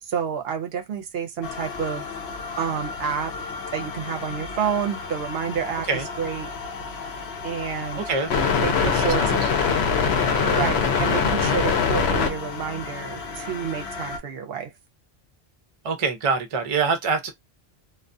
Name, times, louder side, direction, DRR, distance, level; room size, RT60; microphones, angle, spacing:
voice 1, 0.0-2.0 2.6-3.3 3.7-5.9 6.2-6.5 7.4-8.0 8.6-9.4 10.1-14.7, right 7 dB, 70° right, 0.8 m, -29 dB
sound 1, 1.4-14.2, left 5 dB, 80° left, 0.9 m, -26 dB
voice 2, 7.9-8.5 8.9-9.5 10.6-10.7 15.8-17.3, right 5 dB, 40° right, 0.5 m, -26 dB
2.3 x 2.2 x 2.5 m
omnidirectional pair, 1.1 m